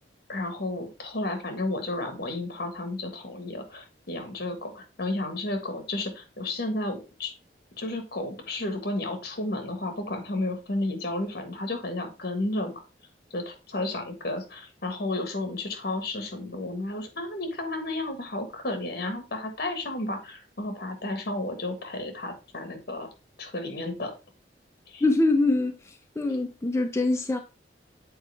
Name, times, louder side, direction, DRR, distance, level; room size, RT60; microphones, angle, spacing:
voice 1, 0.3-7.3 7.8-12.8 13.3-23.1 23.4-24.1 24.9-25.0, left 2 dB, 60° left, 1.6 m, -32 dB
voice 2, 25.0-27.4, left 2 dB, 15° left, 0.5 m, -24 dB
7.8 x 4.4 x 3.4 m
head